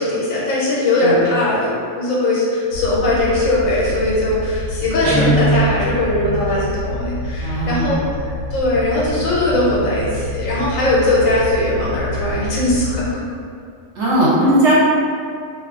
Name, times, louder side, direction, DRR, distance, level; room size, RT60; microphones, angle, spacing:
voice 1, 0.0-8.0 8.2-13.2, left 1 dB, 85° left, -7 dB, 1.1 m, -19 dB
sound 1, 2.7-13.1, left 1 dB, 65° left, 0.7 m, -27 dB
Guitar, 5.0-6.2, right 2 dB, 35° right, 0.8 m, -19 dB
voice 2, 7.4-8.0 14.0-14.7, right 1 dB, 65° right, -6 dB, 0.8 m, -17 dB
2.3 x 2.2 x 2.3 m, 2.3 s
omnidirectional pair, 1.4 m